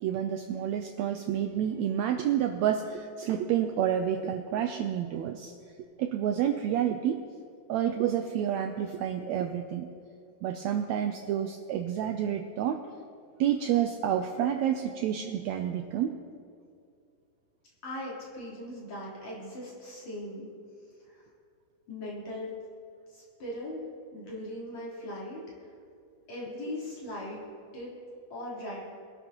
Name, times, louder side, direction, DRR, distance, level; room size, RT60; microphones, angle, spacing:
voice 1, 0.0-5.5 6.0-7.2 7.7-9.9 10.4-12.8 13.4-16.2, right 10 dB, 90° right, 6 dB, 1.5 m, -29 dB
voice 2, 17.8-20.5 21.1-21.2 21.9-22.5 23.1-23.8 24.1-25.4 26.3-27.4 27.7-27.9 28.3-28.9, left 1 dB, 55° left, -7 dB, 4.8 m, -39 dB
23.0 x 12.0 x 2.9 m, 2.4 s
omnidirectional pair, 3.8 m